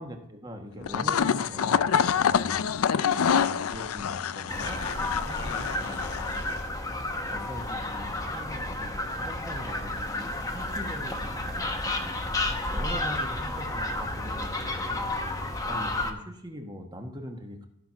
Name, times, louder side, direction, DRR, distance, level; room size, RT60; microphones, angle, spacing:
voice 1, 0.0-2.5 3.0-6.5 7.3-12.3 12.7-15.1 15.6-17.7, equal, 20° right, 4 dB, 1.2 m, -42 dB
sound 1, 0.8-6.6, left 7 dB, 70° left, 0.4 m, -26 dB
sound 2, 4.5-16.1, left 2 dB, 15° left, 0.9 m, -31 dB
13.5 x 5.9 x 5.9 m, 0.78 s
head